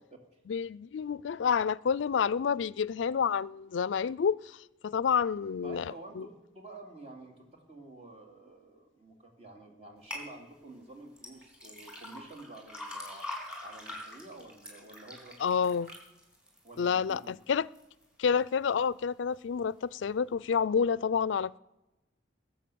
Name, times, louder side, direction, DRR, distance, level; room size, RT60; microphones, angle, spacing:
voice 1, 0.5-4.6 4.8-6.2 15.4-15.9 16.8-17.7 18.2-21.6, left 6 dB, 80° left, 0.4 m, -29 dB
voice 2, 5.6-13.3 13.6-15.7 16.6-17.3, right 2 dB, 35° right, 2.7 m, -49 dB
sound 1, 10.1-10.3 11.2-17.3 17.7-18.3 18.8-18.9, left 1 dB, 5° right, 3.9 m, -44 dB
20.5 x 7.8 x 6.9 m
head